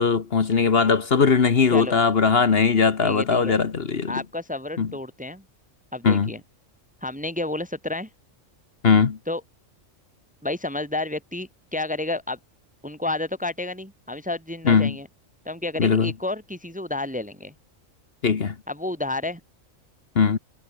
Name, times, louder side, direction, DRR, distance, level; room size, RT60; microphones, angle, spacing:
voice 1, 0.0-4.2 4.8-4.9 6.0-6.3 8.8-9.2 14.6-15.0 15.8-16.1 18.2-18.5 20.1-20.4, left 5 dB, 50° left, 1.4 m, -20 dB
voice 2, 3.0-3.6 4.1-5.4 5.9-6.4 7.0-8.1 9.3-9.4 10.4-12.4 12.8-15.1 15.4-17.5 18.7-19.4, left 2 dB, 5° right, 1.2 m, -30 dB
omnidirectional pair, 1.3 m